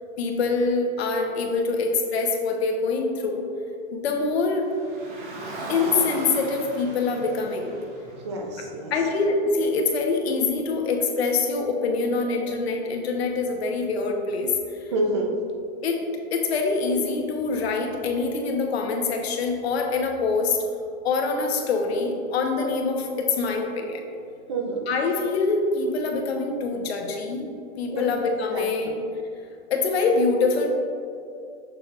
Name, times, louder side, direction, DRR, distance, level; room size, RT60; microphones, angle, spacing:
voice 1, 0.2-3.4 3.9-4.7 5.7-7.8 8.9-14.8 15.8-16.0 16.3-20.6 21.0-24.0 24.9-27.5 27.8-29.0 29.7-30.7, left 4 dB, 65° left, 2 dB, 1.1 m, -25 dB
Car, 4.6-9.0, right 2 dB, 50° right, 1.3 m, -37 dB
voice 2, 8.2-8.9 14.9-15.3 24.5-24.8 27.9-28.1 28.5-29.0, right 2 dB, 25° right, 2 dB, 0.5 m, -28 dB
6.9 x 6.4 x 2.5 m, 2.5 s
supercardioid pair, 175°, 34 cm